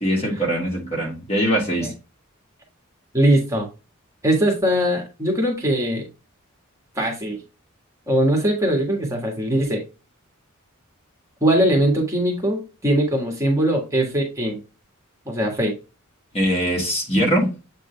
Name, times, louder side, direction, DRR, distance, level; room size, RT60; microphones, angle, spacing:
voice 1, 0.0-1.9 16.3-17.5, equal, 30° left, 2.2 m, -22 dB
voice 2, 3.1-3.7 4.2-6.0 7.0-7.4 8.1-9.8 11.4-14.6 15.2-15.7, right 1 dB, 15° right, 1.6 m, -21 dB
7.9 x 3.8 x 3.3 m
head